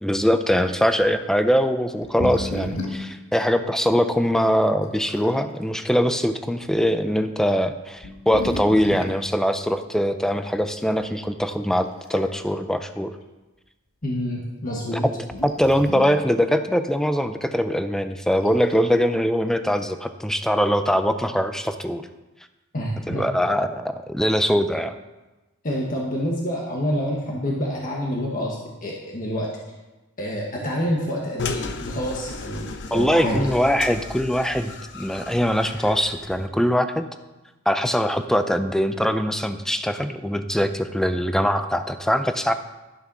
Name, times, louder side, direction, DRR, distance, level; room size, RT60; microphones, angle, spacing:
voice 1, 0.0-13.1 14.9-15.0 15.4-22.1 23.1-24.9 32.9-37.1 37.7-42.5, equal, ahead, 9 dB, 0.5 m, -22 dB
sound 1, 1.0-1.1 2.0-3.2 4.0-4.1 4.8-5.4 6.2-6.4 7.3-7.4 8.0-9.2 10.9-11.0 11.8-12.5 12.9-13.0 15.3-16.3 18.3-18.9, left 1 dB, 75° left, 1.5 m, -32 dB
voice 2, 14.0-15.0 22.7-23.3 25.6-29.5 30.2-33.5, equal, 40° left, -2 dB, 1.3 m, -27 dB
sound 2, 31.4-36.5, left 4 dB, 55° left, 0.8 m, -35 dB
11.5 x 6.7 x 6.1 m, 1.1 s
head